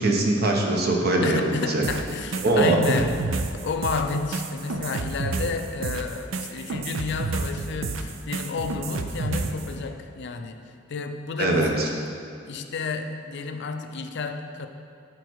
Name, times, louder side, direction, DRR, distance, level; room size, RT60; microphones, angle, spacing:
voice 1, 0.0-1.8 2.4-3.0 11.4-11.9, right 2 dB, 55° right, 0 dB, 1.0 m, -22 dB
voice 2, 1.2-11.9 12.5-14.7, left 4 dB, 60° left, 7 dB, 0.5 m, -31 dB
sound 1, 1.8-9.7, right 3 dB, 70° right, 0.5 m, -30 dB
9.7 x 4.5 x 4.6 m, 2.4 s
head